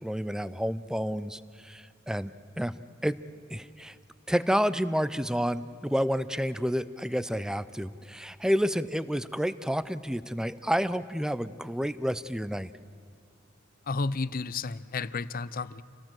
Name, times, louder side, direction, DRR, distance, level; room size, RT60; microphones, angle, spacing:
voice 1, 0.0-2.7 3.0-3.2 3.5-4.0 4.3-12.7, equal, 5° right, 15 dB, 0.6 m, -29 dB
voice 2, 13.9-15.8, left 4 dB, 45° left, 17 dB, 0.6 m, -32 dB
28.0 x 18.0 x 7.7 m, 2.4 s
head